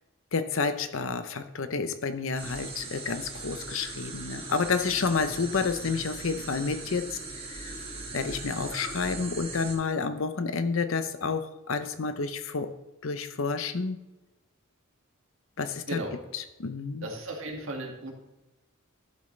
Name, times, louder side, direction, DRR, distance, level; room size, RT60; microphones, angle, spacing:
voice 1, 0.3-7.7 8.1-12.7 13.0-14.0 15.6-16.0 16.3-17.1, left 4 dB, 65° left, 11 dB, 0.7 m, -30 dB
sound 1, 2.4-9.8, right 3 dB, 25° right, 1.7 m, -39 dB
voice 2, 17.0-18.1, right 1 dB, 65° right, 1 dB, 1.9 m, -35 dB
11.5 x 7.4 x 3.2 m, 1.0 s
head